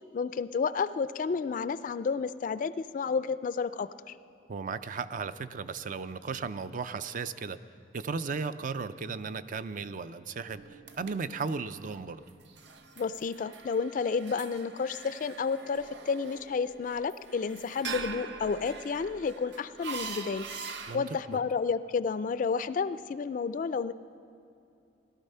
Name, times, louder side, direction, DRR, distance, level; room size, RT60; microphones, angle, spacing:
voice 1, 0.1-4.2 13.0-20.5 20.9-23.9, left 5 dB, 45° left, 14 dB, 0.3 m, -31 dB
voice 2, 4.5-7.6 7.9-12.2 20.9-21.4, right 5 dB, 45° right, 13 dB, 0.4 m, -36 dB
sound 1, 10.5-21.0, right 5 dB, 70° right, 0.8 m, -43 dB
17.5 x 12.0 x 5.5 m, 2.7 s
head